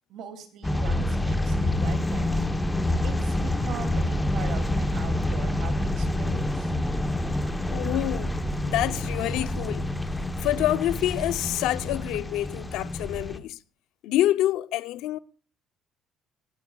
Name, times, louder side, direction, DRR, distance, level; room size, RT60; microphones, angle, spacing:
voice 1, 0.1-2.3 3.0-6.7, right 7 dB, 60° right, 2.7 m, -41 dB
sound 1, 0.6-13.4, left 1 dB, 5° left, 1.0 m, -27 dB
voice 2, 7.7-8.3 8.6-9.9 10.4-13.6 14.0-15.2, left 14 dB, 80° left, 0.6 m, -27 dB
20.5 x 16.0 x 2.4 m
cardioid pair, 170°, 0 cm